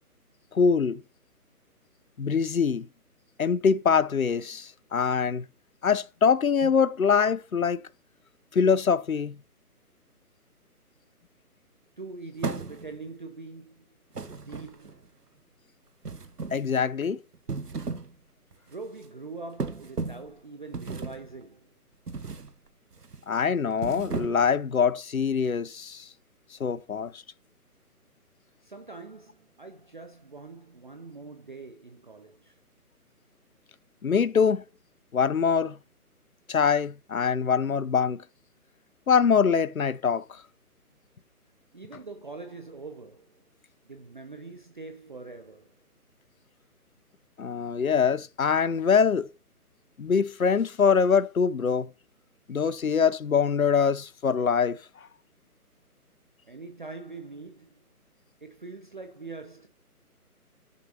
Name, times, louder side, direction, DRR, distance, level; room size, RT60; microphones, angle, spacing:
voice 1, 0.5-1.0 2.2-2.9 3.4-5.4 5.8-7.8 8.5-9.4 16.5-17.2 23.3-26.1 26.6-27.2 34.0-34.6 35.1-35.8 36.5-38.2 39.1-40.4 47.4-49.3 50.0-51.9 52.5-54.8, left 6 dB, 65° left, 0.8 m, -24 dB
voice 2, 12.0-13.9 14.3-15.1 18.7-21.8 28.6-32.6 41.7-43.5 43.8-45.7 56.4-57.9 58.4-59.7, right 3 dB, 30° right, 0.7 m, -43 dB
sound 1, 12.4-13.1 14.1-15.1 16.0-16.7 17.3-18.1 18.5-18.7 19.6-20.3 20.7-21.3 22.1-22.5 22.9-23.2 23.7-24.6, right 4 dB, 80° right, 1.2 m, -35 dB
14.0 x 6.8 x 2.8 m
figure-of-eight pair, 145°, 46 cm